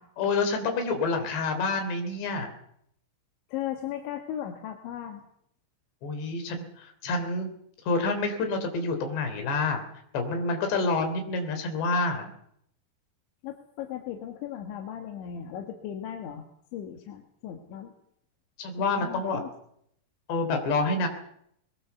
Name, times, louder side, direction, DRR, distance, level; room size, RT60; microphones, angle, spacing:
voice 1, 0.2-2.5 6.0-7.5 7.9-9.8 10.1-12.3 18.6-19.4 20.3-21.1, left 3 dB, 75° left, 6 dB, 5.6 m, -28 dB
voice 2, 3.5-5.2 13.4-16.4 16.7-17.9 18.8-19.5, left 10 dB, 90° left, 4 dB, 4.0 m, -37 dB
21.5 x 20.5 x 7.0 m, 0.71 s
omnidirectional pair, 5.1 m